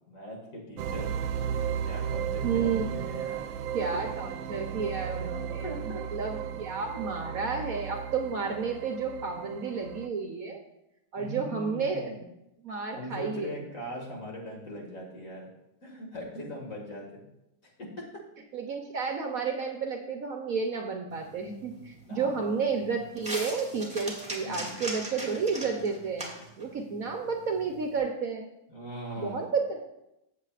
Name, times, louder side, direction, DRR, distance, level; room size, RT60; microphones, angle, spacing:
voice 1, 0.1-1.2 1.8-3.6 5.6-6.0 11.2-12.1 12.7-15.5 15.8-17.2 17.6-18.0 22.1-22.5 24.4-24.7 28.7-29.4, equal, 45° left, -1 dB, 2.3 m, -40 dB
sound 1, 0.8-10.1, right 8 dB, 85° right, 1.3 m, -34 dB
voice 2, 2.4-3.1 3.7-5.6 6.1-10.6 11.1-12.1 12.6-13.6 18.5-26.3 26.6-28.5 29.2-29.8, right 5 dB, 60° right, 3 dB, 1.1 m, -31 dB
sound 2, 21.1-28.0, right 1 dB, 5° right, 1.7 m, -41 dB
14.5 x 7.6 x 2.4 m, 0.86 s
omnidirectional pair, 2.0 m